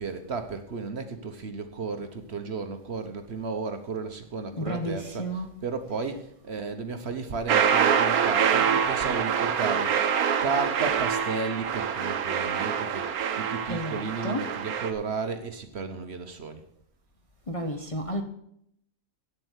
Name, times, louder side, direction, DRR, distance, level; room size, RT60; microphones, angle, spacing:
voice 1, 0.0-10.0 10.4-13.1 13.4-16.6, right 4 dB, 50° right, 1.1 m, -33 dB
voice 2, 4.6-5.5 13.7-14.6 17.5-18.2, equal, 30° left, 0.8 m, -32 dB
sound 1, 7.5-14.9, right 7 dB, 85° right, 1.3 m, -25 dB
8.9 x 7.7 x 8.1 m
omnidirectional pair, 1.5 m